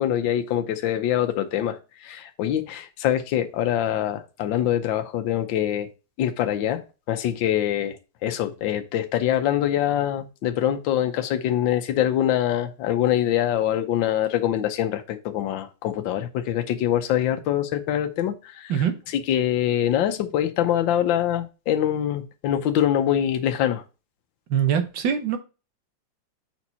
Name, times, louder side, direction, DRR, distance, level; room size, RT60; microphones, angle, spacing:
voice 1, 0.0-5.9 6.2-6.8 7.1-8.0 8.2-18.8 19.1-23.8, left 11 dB, 75° left, 1.5 m, -24 dB
voice 2, 24.5-25.4, right 8 dB, 70° right, 1.6 m, -23 dB
7.0 x 4.5 x 4.2 m
omnidirectional pair, 2.1 m